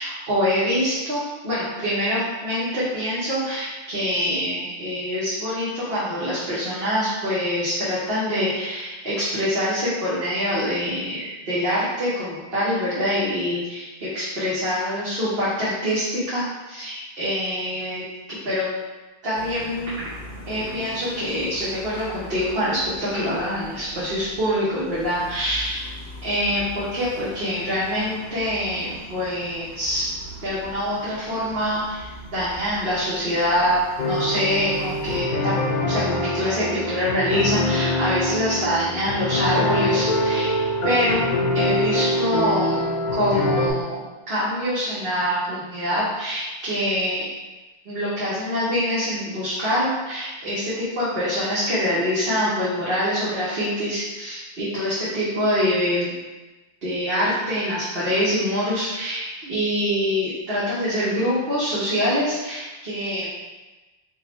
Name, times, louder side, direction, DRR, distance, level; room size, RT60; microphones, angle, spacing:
voice 1, 0.0-18.0 18.4-18.7 19.2-20.0 20.5-25.9 26.2-30.1 30.4-33.8 34.0-35.5 35.9-40.6 40.8-41.2 41.5-42.9 43.1-47.2 47.9-56.1 56.8-63.3, equal, 65° right, -10 dB, 1.1 m, -25 dB
sound 1, 19.3-35.2, left 1 dB, 85° left, 1.0 m, -41 dB
sound 2, 34.0-43.7, left 1 dB, 55° left, 0.6 m, -24 dB
3.5 x 2.1 x 4.0 m, 1.2 s
omnidirectional pair, 1.0 m